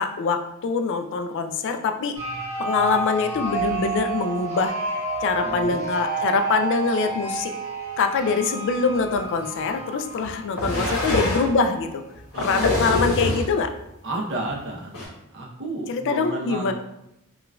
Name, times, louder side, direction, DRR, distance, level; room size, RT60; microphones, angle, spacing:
voice 1, 0.0-2.1 2.6-4.7 5.2-7.5 8.0-12.0 12.4-13.7 15.9-16.7, left 4 dB, 60° left, 7 dB, 0.3 m, -24 dB
sound 1, 2.1-11.9, right 3 dB, 30° right, 1.5 m, -30 dB
voice 2, 5.4-5.8 10.7-10.9 12.3-12.9 14.0-16.7, right 2 dB, 60° right, -1 dB, 0.7 m, -32 dB
sound 2, 9.1-9.2 10.2-11.5 12.1-13.5 14.5-14.6 14.9-15.1, left 2 dB, 85° left, 1.1 m, -25 dB
4.8 x 2.4 x 2.3 m, 0.84 s
head